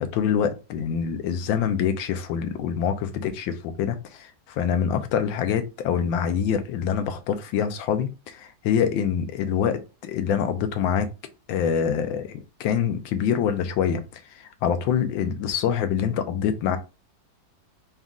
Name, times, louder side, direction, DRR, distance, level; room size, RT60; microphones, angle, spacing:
voice 1, 0.0-11.1 11.5-16.8, left 8 dB, 80° left, 1.4 m, -25 dB
4.1 x 2.4 x 3.5 m
omnidirectional pair, 2.1 m